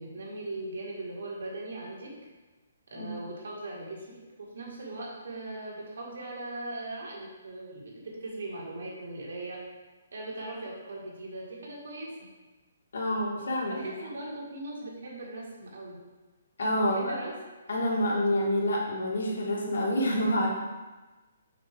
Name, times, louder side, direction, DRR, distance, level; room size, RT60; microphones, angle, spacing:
voice 1, 0.0-2.1 2.9-4.1 4.4-9.6 10.1-12.1 13.7-16.0 16.8-17.3, right 2 dB, 65° right, -3 dB, 1.8 m, -39 dB
voice 2, 12.9-13.9 16.6-17.2 17.7-20.5, equal, 70° left, -3 dB, 1.7 m, -27 dB
5.8 x 4.5 x 3.7 m, 1.2 s
hypercardioid pair, 180°, 0 cm